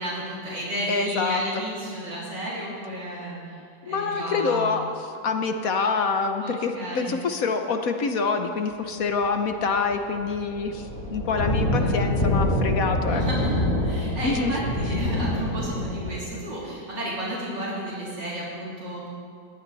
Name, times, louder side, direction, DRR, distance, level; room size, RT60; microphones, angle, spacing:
voice 1, 0.0-3.6 3.9-4.8 6.4-7.2 11.4-12.1 13.1-19.1, right 1 dB, 65° right, -6 dB, 3.9 m, -32 dB
voice 2, 0.9-1.4 3.8-4.8 5.2-13.2 14.2-14.5, left 4 dB, 55° left, 6 dB, 1.2 m, -26 dB
sound 1, 9.5-9.7 9.9-16.2, left 1 dB, 25° left, 3.2 m, -26 dB
20.5 x 15.5 x 4.1 m, 2.4 s
omnidirectional pair, 2.1 m